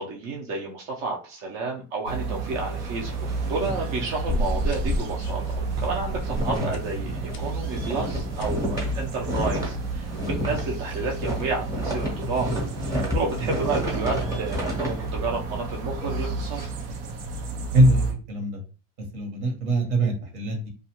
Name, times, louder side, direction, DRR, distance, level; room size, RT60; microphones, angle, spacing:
voice 1, 0.0-3.1 3.5-16.6, right 3 dB, 50° right, -1 dB, 0.6 m, -31 dB
sound 1, 2.1-18.1, right 4 dB, 90° right, 0.7 m, -32 dB
sound 2, 2.4-4.7 5.0-5.2 5.5-16.7, equal, 10° right, 0.8 m, -32 dB
sound 3, 4.3-10.7, left 1 dB, 35° left, 0.5 m, -33 dB
voice 2, 17.7-18.6 19.1-20.7, right 1 dB, 75° right, 2 dB, 1.2 m, -23 dB
2.4 x 2.4 x 2.9 m, 0.34 s
supercardioid pair, 125°, 35 cm